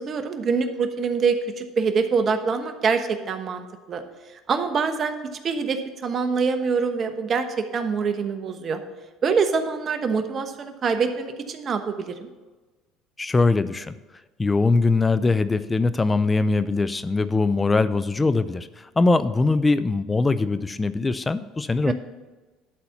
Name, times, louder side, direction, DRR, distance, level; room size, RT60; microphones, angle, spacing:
voice 1, 0.0-4.0 4.5-5.1 5.4-8.8 9.2-12.3 21.9-22.0, right 5 dB, 45° right, 7 dB, 1.1 m, -25 dB
voice 2, 13.2-14.0 14.4-21.9, left 3 dB, 20° left, 15 dB, 0.5 m, -22 dB
12.0 x 4.3 x 7.1 m, 1.3 s
supercardioid pair, 80°, 0 cm